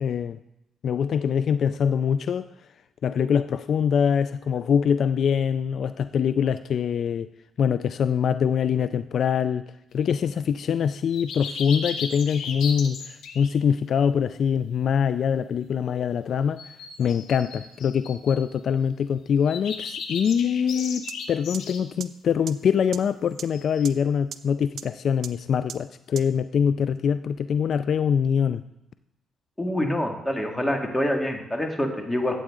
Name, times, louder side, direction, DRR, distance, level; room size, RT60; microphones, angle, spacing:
voice 1, 0.0-0.4 0.8-2.5 3.0-7.3 7.6-16.6 17.0-28.6, left 7 dB, 60° left, 13 dB, 0.3 m, -24 dB
sound 1, 11.1-13.5 16.6-18.5 19.5-21.8 23.5-23.9, left 5 dB, 85° left, 1.1 m, -36 dB
sound 2, 21.1-21.2 21.5-21.6 22.0-22.1 22.5-22.6 22.9-23.0 23.4-23.5 23.8-23.9 24.3-24.4 24.8-24.9 25.2-25.3 25.7-25.8 26.1-26.2, right 9 dB, 70° right, 0.6 m, -34 dB
voice 2, 29.6-32.4, left 1 dB, 10° left, 2 dB, 2.0 m, -26 dB
14.5 x 8.4 x 3.7 m, 0.87 s
cardioid pair, 90°, 0 cm